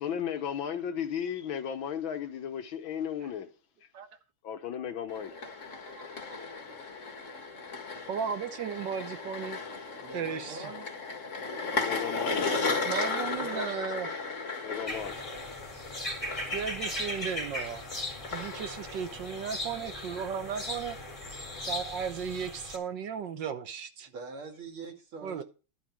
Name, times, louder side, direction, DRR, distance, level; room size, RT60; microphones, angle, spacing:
voice 1, 0.0-3.5 4.4-5.3 11.8-12.5 14.6-15.2, left 8 dB, 70° left, 1.6 m, -35 dB
sound 1, 5.1-22.0, left 4 dB, 35° left, 1.9 m, -36 dB
voice 2, 5.9-6.4 8.1-10.7 12.8-14.1 16.5-17.8 18.3-21.0 21.7-24.1 25.2-25.4, right 7 dB, 65° right, 1.5 m, -35 dB
voice 3, 10.0-10.9 13.0-13.8 24.1-25.4, right 4 dB, 80° right, 3.2 m, -44 dB
sound 2, 14.9-22.8, left 1 dB, 15° left, 2.7 m, -38 dB
11.5 x 4.5 x 7.4 m
omnidirectional pair, 2.3 m